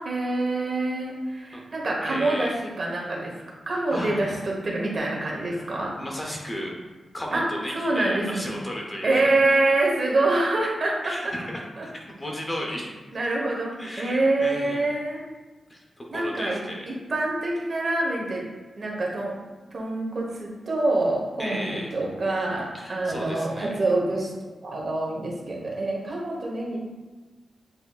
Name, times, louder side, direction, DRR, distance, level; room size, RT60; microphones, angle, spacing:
voice 1, 0.0-3.3 3.7-5.9 7.3-8.4 9.0-11.3 11.8-11.9 13.1-15.2 16.1-18.4 18.8-19.4 19.7-24.3 24.6-26.8, right 2 dB, 45° right, -3 dB, 1.0 m, -26 dB
voice 2, 2.0-2.5 3.7-4.2 5.2-5.6 6.0-6.8 7.1-9.7 11.0-12.9 13.8-14.8 15.7-16.8 21.4-21.9 22.7-23.7, equal, 20° left, -1 dB, 0.7 m, -34 dB
7.9 x 2.8 x 2.3 m, 1.2 s
wide cardioid pair, 160°, 0 cm